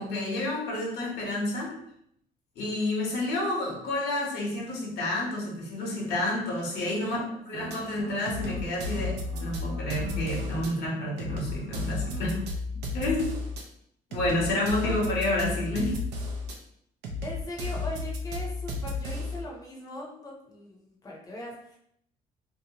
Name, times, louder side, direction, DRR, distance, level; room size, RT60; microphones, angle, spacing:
voice 1, 0.0-1.7 2.6-7.2 7.5-12.4 12.9-13.3 14.1-16.0, left 1 dB, 75° left, -2 dB, 1.0 m, -29 dB
voice 2, 6.8-7.4 14.8-15.0 17.2-21.8, left 1 dB, 20° left, -2 dB, 0.7 m, -40 dB
sound 1, 7.4-12.4, right 2 dB, 65° right, 0.9 m, -43 dB
sound 2, 7.7-7.8 8.3-10.7 11.2-13.6 14.1-16.6 17.0-19.4, left 3 dB, 85° right, 0.6 m, -33 dB
2.8 x 2.1 x 2.8 m, 0.71 s
cardioid pair, 110°, 17 cm